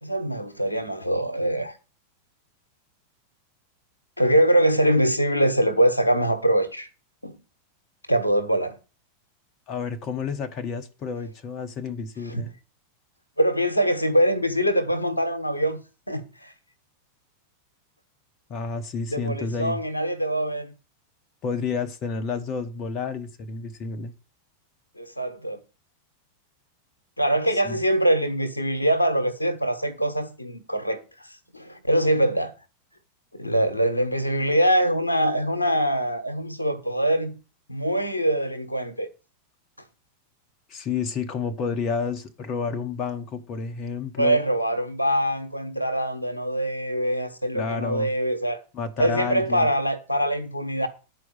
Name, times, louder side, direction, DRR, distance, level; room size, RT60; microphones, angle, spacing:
voice 1, 0.0-1.7 4.2-6.9 7.2-7.4 8.1-8.8 12.2-12.4 13.4-15.8 16.1-16.5 19.1-20.7 25.0-25.6 27.2-31.0 31.5-32.5 33.3-37.4 37.7-39.1 44.2-48.6 49.0-50.9, right 1 dB, 85° left, 1.3 m, -23 dB
voice 2, 9.7-12.5 18.5-19.8 21.4-24.1 27.6-27.8 40.7-44.4 47.5-48.1 48.7-49.7, left 5 dB, 35° left, 1.1 m, -30 dB
10.0 x 4.7 x 8.0 m
figure-of-eight pair, 90°, 0 cm